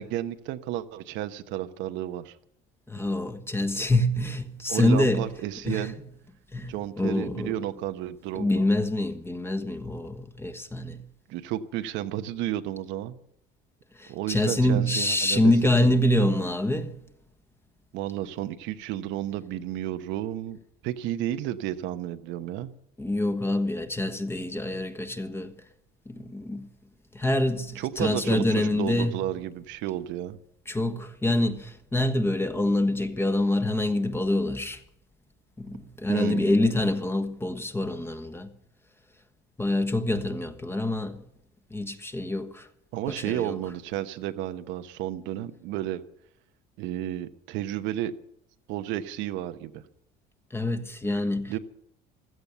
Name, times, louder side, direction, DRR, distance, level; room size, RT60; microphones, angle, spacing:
voice 1, 0.0-2.4 4.7-6.0 6.7-8.6 11.3-13.2 14.1-15.5 15.8-16.0 17.9-22.7 27.7-30.4 36.1-36.6 42.9-46.0 46.8-48.1 48.7-49.8 51.5-51.6, right 13 dB, 75° right, 1.0 m, -32 dB
voice 2, 2.9-5.3 5.6-5.9 6.5-7.5 8.4-11.0 14.0-17.0 23.0-25.5 26.0-26.7 27.1-29.1 30.7-34.8 35.6-38.5 39.6-41.2 41.7-42.7 43.1-43.6 50.5-51.5, left 1 dB, 10° left, 1.4 m, -26 dB
15.5 x 13.5 x 6.9 m
cardioid pair, 110°, 20 cm